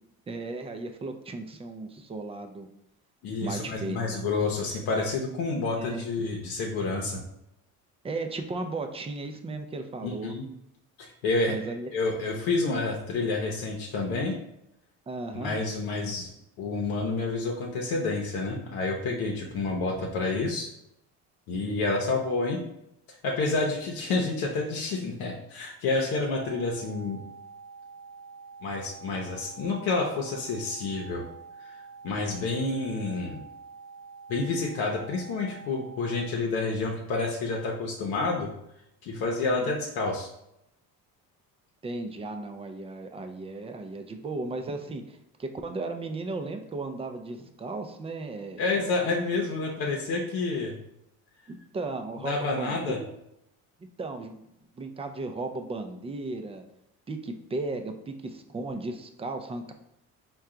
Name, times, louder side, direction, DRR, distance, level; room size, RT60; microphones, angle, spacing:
voice 1, 0.3-2.7 3.4-4.2 5.8-6.0 8.0-10.4 11.5-11.9 15.1-15.6 29.6-29.7 39.6-39.7 41.8-48.6 49.6-49.7 51.5-53.0 54.0-54.4 54.8-56.6 57.1-59.7, right 3 dB, 15° right, 6 dB, 0.4 m, -35 dB
voice 2, 3.2-7.2 10.0-10.5 11.0-11.6 11.9-14.4 15.3-16.3 16.6-20.7 21.5-22.6 23.1-27.2 28.6-31.2 31.6-31.8 32.0-33.4 34.3-38.5 39.0-40.3 48.6-50.8 52.2-53.0, left 3 dB, 80° left, -1 dB, 0.8 m, -29 dB
sound 1, 26.3-36.3, right 5 dB, 45° left, 1.0 m, -47 dB
4.4 x 2.3 x 3.7 m, 0.83 s
cardioid pair, 105°, 36 cm